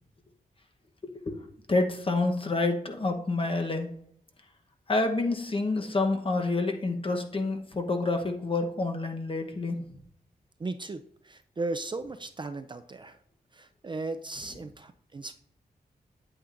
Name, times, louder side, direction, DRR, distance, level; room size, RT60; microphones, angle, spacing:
voice 1, 1.0-1.4 1.7-3.9 4.9-9.8, left 2 dB, 35° left, 4 dB, 1.0 m, -28 dB
voice 2, 10.6-13.2 13.5-15.3, right 3 dB, 30° right, 9 dB, 0.4 m, -36 dB
8.4 x 8.4 x 2.5 m, 0.66 s
cardioid pair, 80°, 16 cm